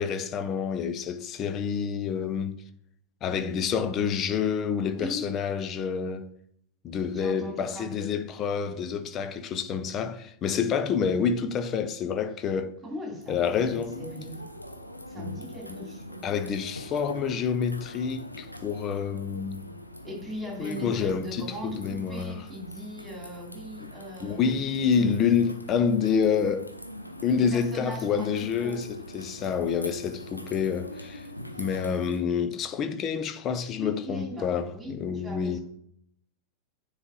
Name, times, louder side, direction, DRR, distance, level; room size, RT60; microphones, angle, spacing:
voice 1, 0.0-2.6 3.2-6.3 6.8-12.8 13.3-14.0 15.1-15.3 16.2-19.6 20.6-22.4 24.2-26.7 27.2-31.3 31.6-35.6, left 6 dB, 30° left, 0.6 m, -28 dB
voice 2, 4.9-5.3 7.1-8.1 12.8-14.5 15.1-16.5 20.0-24.4 24.7-25.2 27.3-28.8 31.4-31.7 33.6-35.6, equal, 10° right, 2.9 m, -40 dB
sound 1, 13.2-32.2, left 1 dB, 85° left, 0.6 m, -43 dB
9.4 x 3.3 x 3.9 m
figure-of-eight pair, 90°, 0 cm